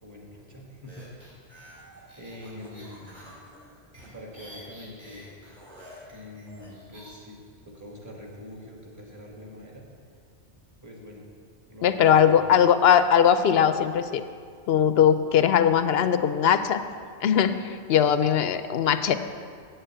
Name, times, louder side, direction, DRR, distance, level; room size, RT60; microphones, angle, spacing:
voice 1, 0.0-1.1 2.2-3.2 4.1-5.3 6.1-7.4 7.6-9.8 10.8-11.2 11.7-12.5, left 1 dB, 15° right, -1 dB, 1.7 m, -44 dB
sound 1, 0.9-7.1, equal, 45° right, 3.6 m, -48 dB
voice 2, 11.8-14.2 14.7-16.8 17.2-19.1, left 8 dB, 70° left, 11 dB, 0.8 m, -20 dB
8.3 x 8.0 x 7.9 m, 2.2 s
omnidirectional pair, 1.1 m